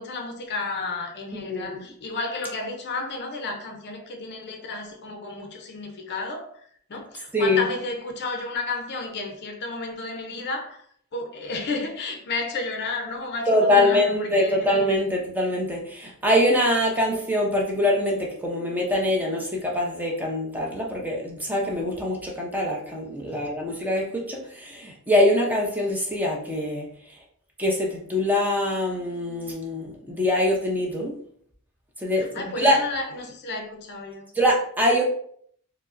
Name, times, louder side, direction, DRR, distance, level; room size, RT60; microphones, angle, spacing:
voice 1, 0.0-6.6 6.9-10.8 11.1-14.7 23.3-23.4 32.2-34.3, left 3 dB, 50° left, 0.5 m, -32 dB
voice 2, 1.3-1.8 7.3-7.7 13.5-26.9 27.6-31.1 32.0-32.8 34.3-35.0, left 1 dB, 10° right, 0.6 m, -23 dB
4.7 x 2.0 x 2.5 m
head